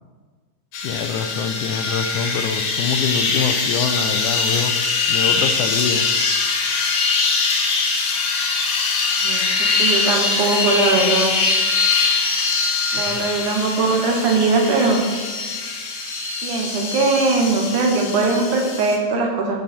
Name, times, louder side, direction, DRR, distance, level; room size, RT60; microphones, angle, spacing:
sound 1, 0.7-19.0, left 4 dB, 60° left, 2.0 m, -22 dB
voice 1, 0.8-4.7 5.1-6.1 13.0-13.2, left 7 dB, 85° left, 8 dB, 2.0 m, -25 dB
voice 2, 9.2-11.3 12.9-15.0 16.4-19.6, right 3 dB, 80° right, 1 dB, 2.7 m, -20 dB
12.0 x 6.3 x 4.3 m, 1.5 s
omnidirectional pair, 3.5 m